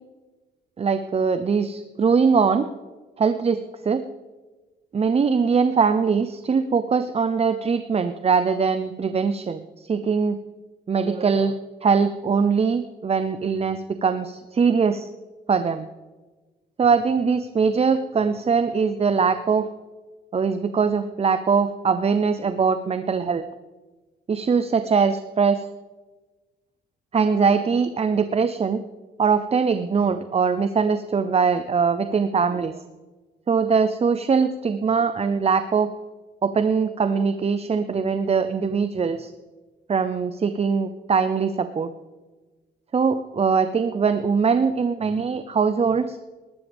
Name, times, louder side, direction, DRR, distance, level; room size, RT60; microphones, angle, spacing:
voice 1, 0.8-2.7 3.2-4.1 4.9-10.4 10.9-11.5 11.8-15.1 15.5-15.9 16.8-19.7 20.3-23.4 24.3-25.7 27.1-28.8 29.2-32.9 33.5-35.9 36.4-39.3 39.9-41.9 42.9-46.2, right 5 dB, 30° right, 11 dB, 0.6 m, -22 dB
19.5 x 12.5 x 3.5 m, 1.2 s
cardioid pair, 90°, 20 cm